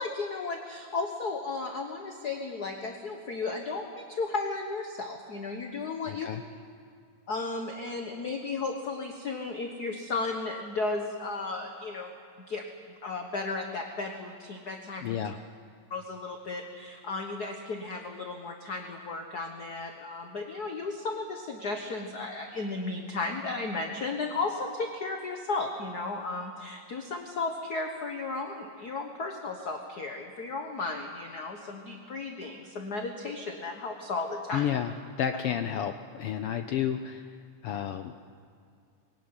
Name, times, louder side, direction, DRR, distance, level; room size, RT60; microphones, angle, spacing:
voice 1, 0.0-6.3 7.3-12.1 12.5-12.6 13.0-15.2 15.9-34.7, left 3 dB, 45° left, 4 dB, 1.3 m, -34 dB
voice 2, 6.1-6.4 15.0-15.4 34.5-34.9 35.2-37.2 37.6-38.1, left 9 dB, 80° left, 8 dB, 1.3 m, -31 dB
22.0 x 17.5 x 9.7 m, 2.3 s
omnidirectional pair, 3.4 m